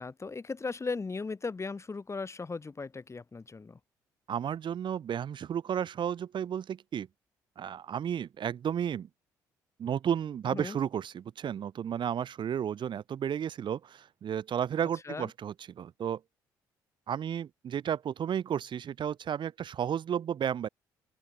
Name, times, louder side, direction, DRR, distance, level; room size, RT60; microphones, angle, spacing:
voice 1, 0.0-3.8 10.5-10.8 15.0-15.3, left 4 dB, 30° left, 5.6 m, -37 dB
voice 2, 4.3-7.1 7.6-9.1 9.8-16.2 17.1-20.7, right 9 dB, 55° right, 6.3 m, -33 dB
open air
hypercardioid pair, 50°, 10 cm